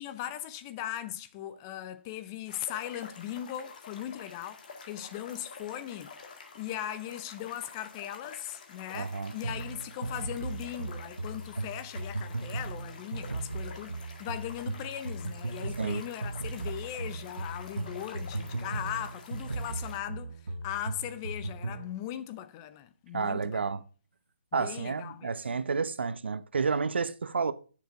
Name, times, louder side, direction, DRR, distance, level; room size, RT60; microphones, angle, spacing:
voice 1, 0.0-6.1 6.6-23.6 24.6-25.3, left 12 dB, 20° left, 0.4 m, -39 dB
sound 1, 2.5-20.0, left 4 dB, 45° left, 1.8 m, -49 dB
voice 2, 8.9-9.3 15.8-16.0 23.1-23.8 24.5-27.5, right 5 dB, 70° right, 0.8 m, -30 dB
sound 2, 9.4-21.9, right 2 dB, 90° right, 1.1 m, -37 dB
6.7 x 6.6 x 4.8 m
hypercardioid pair, 155°, 6 cm